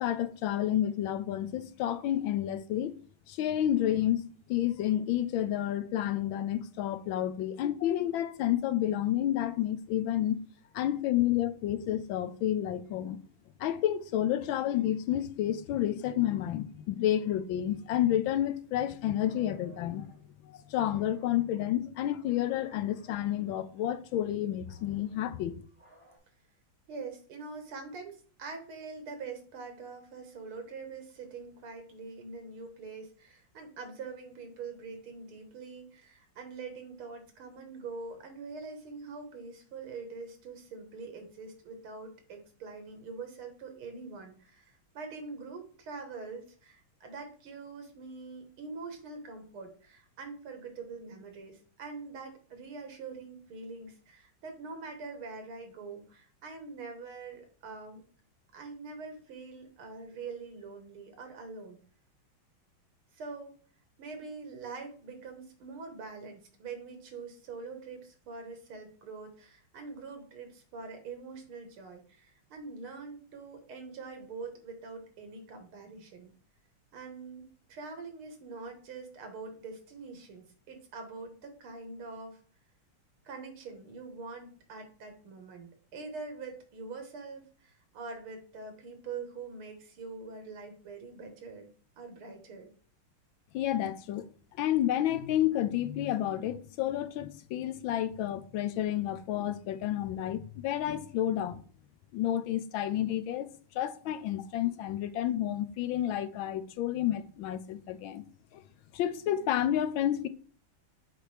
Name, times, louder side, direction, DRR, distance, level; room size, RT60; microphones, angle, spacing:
voice 1, 0.0-2.9 3.3-10.4 10.7-13.2 13.6-20.1 20.4-25.6 93.5-94.2 94.6-101.6 102.1-103.5 103.7-108.2 108.5-108.6 108.9-110.3, left 12 dB, 75° left, 1.3 m, -30 dB
sound 1, 19.2-20.2 20.8-21.7 22.3-23.6 24.6-26.2, right 2 dB, 25° right, 3.4 m, -60 dB
voice 2, 26.9-58.0 58.5-61.8 63.1-63.5 64.0-76.3 76.9-82.4 83.2-91.7 92.0-92.7, right 4 dB, 80° right, 2.3 m, -44 dB
7.5 x 4.8 x 3.3 m
omnidirectional pair, 2.3 m